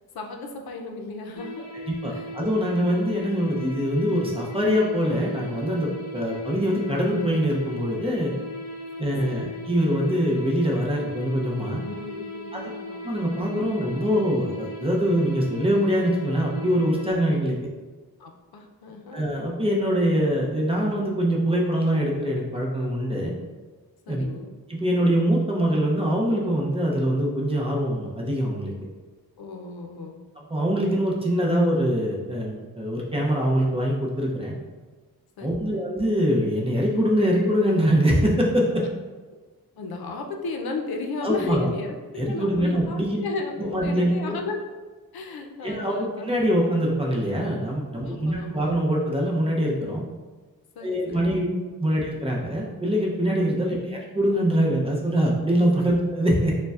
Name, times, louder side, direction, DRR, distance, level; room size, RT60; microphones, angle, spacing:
voice 1, 0.1-1.7 2.1-2.3 9.0-9.5 11.8-13.0 18.2-19.2 24.1-24.5 29.4-30.2 35.4-35.8 39.8-44.6 45.1-46.5 48.0-48.8 50.8-51.3 53.4-53.6 55.6-55.8, left 3 dB, 75° left, 3 dB, 0.6 m, -34 dB
sound 1, 1.3-17.1, left 1 dB, 45° left, 1.2 m, -37 dB
voice 2, 1.9-8.3 9.0-11.8 12.5-12.6 13.0-17.6 19.1-23.3 24.1-24.2 24.7-28.7 30.4-34.5 35.4-38.8 41.2-41.7 42.2-43.2 43.6-44.4 45.6-50.0 50.8-51.5 51.8-56.6, equal, 15° right, -3 dB, 0.6 m, -23 dB
6.5 x 2.2 x 2.4 m, 1.3 s
wide cardioid pair, 150°, 37 cm